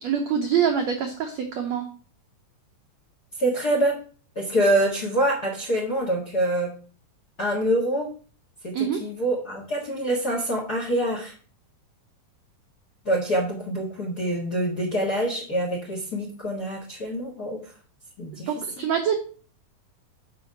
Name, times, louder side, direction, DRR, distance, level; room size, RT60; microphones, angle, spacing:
voice 1, 0.0-1.9 8.7-9.0 18.5-19.2, right 8 dB, 80° right, 3 dB, 1.5 m, -25 dB
voice 2, 3.4-4.0 4.3-6.7 7.4-8.1 8.6-11.3 13.0-17.7 18.2-18.5, right 1 dB, 45° left, 0 dB, 1.2 m, -25 dB
6.9 x 4.9 x 6.5 m, 0.41 s
omnidirectional pair, 4.3 m